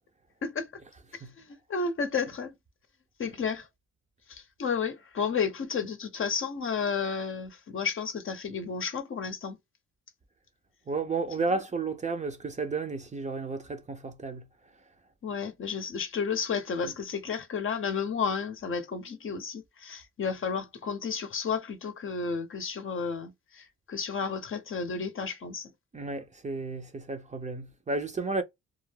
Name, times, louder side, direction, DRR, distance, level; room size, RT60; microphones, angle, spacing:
voice 1, 1.1-2.5 3.2-3.7 4.3-9.6 15.2-25.7, left 5 dB, 45° left, 0.7 m, -32 dB
voice 2, 10.9-14.4 16.8-16.9 25.9-28.4, right 3 dB, 25° right, 0.6 m, -32 dB
2.3 x 2.0 x 3.2 m
cardioid pair, 90°, 30 cm